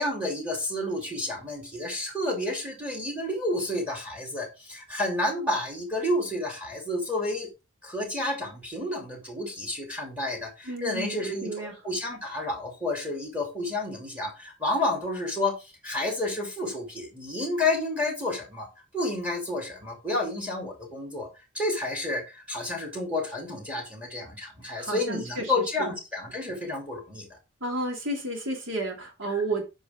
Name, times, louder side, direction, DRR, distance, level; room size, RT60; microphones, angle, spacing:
voice 1, 0.0-7.5 7.8-18.7 18.9-21.3 21.5-27.4 29.3-29.4, left 2 dB, 5° right, 0 dB, 2.5 m, -30 dB
voice 2, 10.7-11.7 24.7-25.9 27.6-29.6, right 2 dB, 80° right, 1 dB, 2.7 m, -32 dB
8.3 x 5.3 x 3.6 m, 0.27 s
head